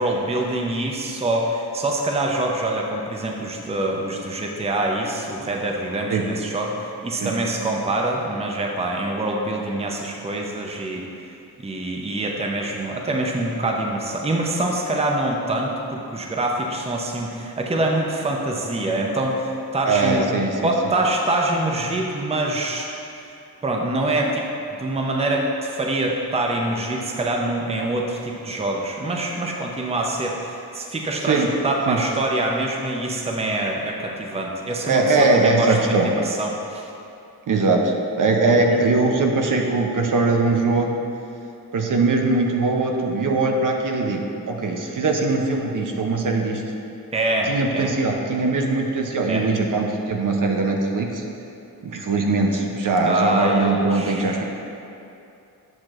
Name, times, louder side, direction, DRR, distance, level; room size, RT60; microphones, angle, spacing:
voice 1, 0.0-11.0 11.6-20.3 20.6-22.9 23.6-24.5 24.8-36.9 38.7-38.8 47.1-47.9 49.3-49.4 53.1-54.4, right 2 dB, 15° right, 0 dB, 0.6 m, -25 dB
voice 2, 19.8-20.7 31.2-31.5 31.9-32.0 34.8-36.1 37.5-41.0 41.7-46.6 47.4-51.2 51.8-54.4, right 3 dB, 50° right, 2 dB, 0.7 m, -21 dB
9.0 x 5.9 x 2.5 m, 2.7 s
cardioid pair, 85°, 40 cm